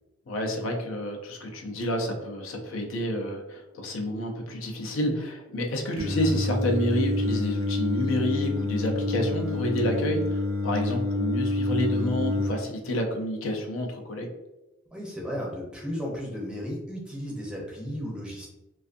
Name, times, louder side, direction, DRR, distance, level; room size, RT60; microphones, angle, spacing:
voice 1, 0.3-14.3, left 1 dB, 75° left, 2 dB, 0.5 m, -29 dB
Singing, 6.0-12.5, left 1 dB, 75° right, 0.6 m, -27 dB
voice 2, 14.9-18.5, equal, 5° right, -3 dB, 0.6 m, -34 dB
2.5 x 2.4 x 2.5 m, 1.0 s
head